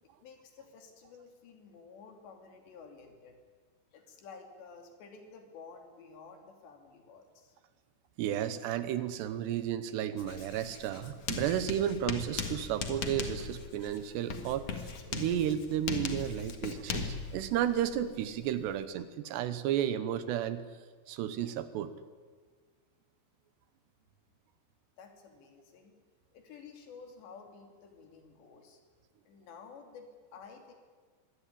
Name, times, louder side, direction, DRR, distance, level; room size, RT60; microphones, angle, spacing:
voice 1, 0.0-3.4 3.9-7.6 25.0-25.9 26.3-28.8 29.3-30.7, left 5 dB, 80° left, 4 dB, 5.0 m, -52 dB
voice 2, 8.2-14.8 15.1-20.6 21.1-21.9, right 10 dB, 80° right, 13 dB, 3.1 m, -33 dB
Writing, 10.2-18.8, left 5 dB, 50° left, 2.4 m, -39 dB
24.0 x 17.0 x 10.0 m, 1.5 s
omnidirectional pair, 4.9 m